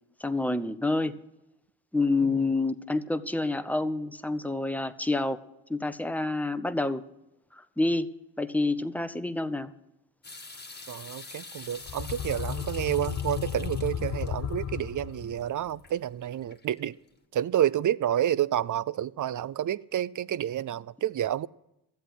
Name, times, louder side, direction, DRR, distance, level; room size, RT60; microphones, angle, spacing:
voice 1, 0.2-1.2 1.9-5.4 5.7-7.0 7.5-8.1 8.4-9.7, left 2 dB, 5° left, 0.8 m, -28 dB
sound 1, 10.2-17.1, left 3 dB, 20° left, 1.7 m, -47 dB
voice 2, 10.9-17.0 17.3-21.5, right 11 dB, 45° right, 0.5 m, -29 dB
sound 2, 11.7-15.5, left 9 dB, 40° left, 0.5 m, -33 dB
13.0 x 8.0 x 7.8 m
supercardioid pair, 60°, 45 cm